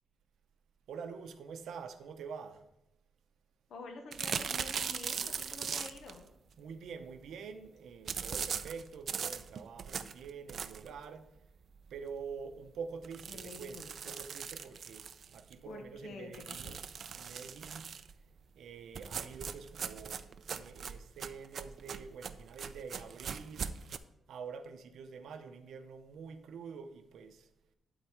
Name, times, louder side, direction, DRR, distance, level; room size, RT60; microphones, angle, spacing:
voice 1, 0.9-2.6 6.6-11.3 11.9-16.9 17.1-17.9 18.6-23.8 24.3-27.5, right 5 dB, 80° right, 0.7 m, -46 dB
voice 2, 3.7-6.3 13.3-14.1 15.6-16.8, left 3 dB, 70° left, 1.0 m, -48 dB
sound 1, 4.1-6.2 8.1-11.0 11.4-11.5 11.9-12.0 12.3-12.4 13.0-15.5 16.3-18.1 18.9-24.0, right 7 dB, 55° right, 0.4 m, -40 dB
12.0 x 4.1 x 4.7 m
cardioid pair, 135°, 0 cm